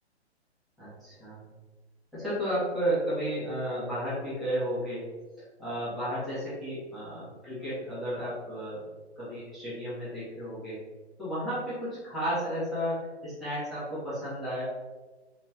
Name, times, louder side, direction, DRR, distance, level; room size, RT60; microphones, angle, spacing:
voice 1, 0.8-1.4 2.1-5.0 5.6-8.8 9.2-10.8 11.2-14.6, equal, ahead, -13 dB, 1.3 m, -33 dB
3.1 x 2.9 x 3.6 m, 1.2 s
hypercardioid pair, 135°, 33 cm